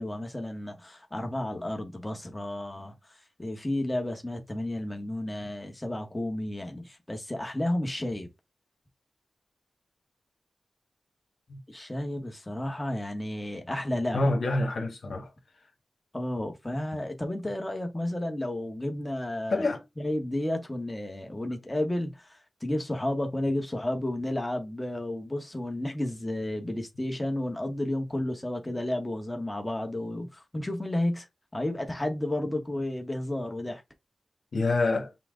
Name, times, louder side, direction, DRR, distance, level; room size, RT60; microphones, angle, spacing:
voice 1, 0.0-8.3 11.7-14.2 16.1-19.7 20.0-31.3 31.5-33.8, left 1 dB, 15° left, 1.2 m, -32 dB
voice 2, 14.1-15.3 16.9-17.0 19.5-19.8 34.5-35.1, left 2 dB, 75° left, 1.3 m, -27 dB
5.8 x 2.3 x 3.7 m
cardioid pair, 65°, 0 cm